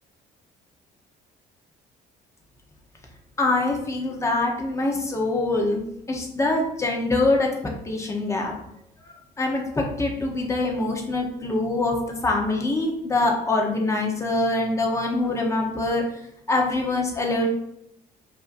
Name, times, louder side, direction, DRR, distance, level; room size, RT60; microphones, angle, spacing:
voice 1, 3.4-5.8 6.1-7.5 7.8-8.5 9.4-16.0 16.5-17.5, left 2 dB, 15° left, 0 dB, 0.9 m, -24 dB
5.1 x 2.7 x 2.6 m, 0.78 s
cardioid pair, 110°, 17 cm